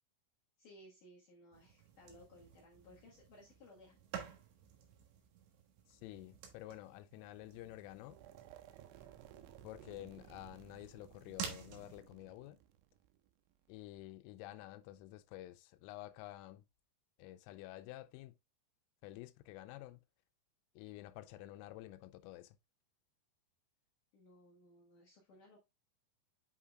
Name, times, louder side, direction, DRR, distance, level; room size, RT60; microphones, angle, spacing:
voice 1, 0.6-4.0 24.1-25.6, left 1 dB, 75° left, 1.9 m, -60 dB
sound 1, 1.5-12.0, right 8 dB, 70° right, 3.4 m, -52 dB
voice 2, 5.9-8.2 9.6-12.6 13.7-16.6 17.2-18.3 19.0-20.0 20.8-22.6, left 15 dB, 90° left, 3.2 m, -50 dB
sound 2, 8.0-14.0, right 11 dB, 90° right, 3.3 m, -59 dB
8.4 x 5.6 x 2.3 m
omnidirectional pair, 5.7 m